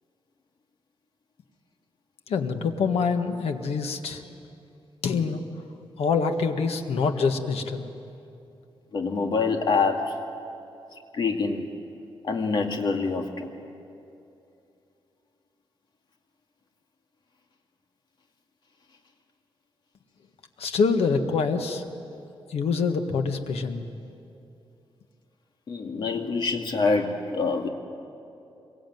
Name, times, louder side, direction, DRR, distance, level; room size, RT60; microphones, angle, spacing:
voice 1, 2.3-4.3 5.0-5.4 6.0-7.9 20.6-21.8 22.5-23.8, left 5 dB, 85° left, 6 dB, 1.7 m, -25 dB
voice 2, 8.9-10.1 11.1-11.6 12.2-13.5 25.7-27.7, left 4 dB, 50° left, 3 dB, 2.2 m, -25 dB
25.0 x 23.0 x 9.4 m, 2.7 s
wide cardioid pair, 180°, 10 cm